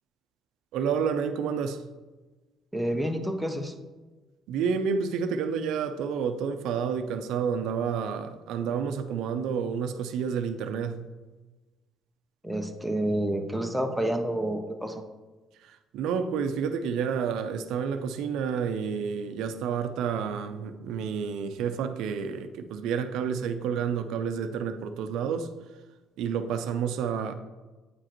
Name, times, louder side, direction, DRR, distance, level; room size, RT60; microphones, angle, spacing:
voice 1, 0.7-1.8 4.5-11.0 15.6-25.5 26.2-27.3, right 6 dB, 85° right, 0.4 m, -30 dB
voice 2, 2.7-3.7 12.4-15.0, right 1 dB, ahead, 0.5 m, -29 dB
8.6 x 4.9 x 3.0 m
cardioid pair, 150°, 0 cm